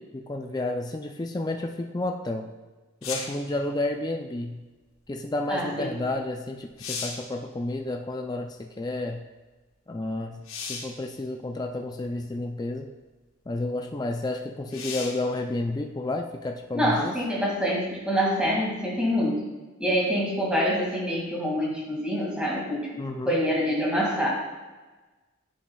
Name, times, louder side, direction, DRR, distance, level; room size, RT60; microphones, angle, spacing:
voice 1, 0.0-2.5 3.0-4.6 5.1-9.2 9.9-10.4 10.7-12.9 13.5-17.2 23.0-23.4, left 2 dB, 20° left, 3 dB, 0.3 m, -31 dB
sound 1, 3.0-3.5 6.1-6.2 6.6-7.3 10.4-11.0 12.0-12.1 14.7-15.3 18.9-19.0, left 5 dB, 80° left, 1.1 m, -35 dB
voice 2, 5.5-5.9 16.7-19.5 19.8-24.3, equal, 5° right, -5 dB, 2.0 m, -26 dB
10.0 x 7.0 x 2.3 m, 1.2 s
head